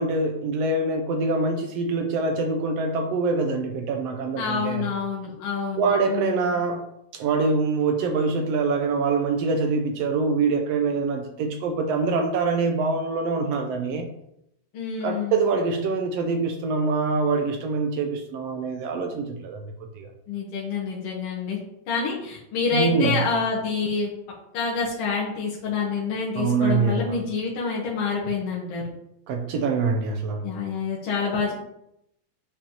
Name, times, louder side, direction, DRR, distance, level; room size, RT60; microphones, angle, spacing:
voice 1, 0.0-4.9 5.8-6.8 7.1-14.1 15.0-20.1 22.7-23.2 26.3-27.2 29.3-30.4, right 4 dB, 75° right, 5 dB, 1.5 m, -24 dB
voice 2, 4.4-6.6 14.7-15.4 20.3-21.6 21.9-24.1 24.5-28.8 30.4-31.5, left 5 dB, 60° left, -5 dB, 2.0 m, -27 dB
9.1 x 5.1 x 2.9 m, 0.78 s
omnidirectional pair, 3.4 m